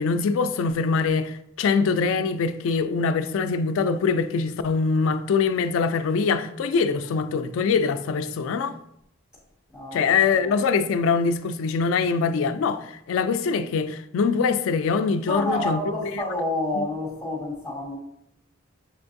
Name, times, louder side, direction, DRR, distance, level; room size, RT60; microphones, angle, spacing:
voice 1, 0.0-8.8 9.9-16.2 16.7-16.9, left 5 dB, 75° left, 0.3 m, -23 dB
voice 2, 9.7-10.5 15.3-18.0, left 1 dB, 5° right, 1.4 m, -29 dB
6.8 x 2.6 x 2.5 m
head